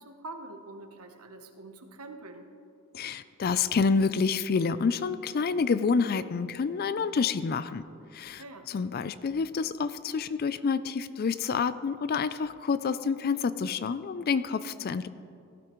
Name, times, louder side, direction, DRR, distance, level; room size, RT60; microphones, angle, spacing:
voice 1, 0.0-2.5 8.4-8.7, right 2 dB, 80° right, 6 dB, 1.0 m, -45 dB
voice 2, 2.9-7.8 8.1-15.1, left 5 dB, 45° left, 14 dB, 0.4 m, -28 dB
18.0 x 12.0 x 3.1 m, 2.5 s
head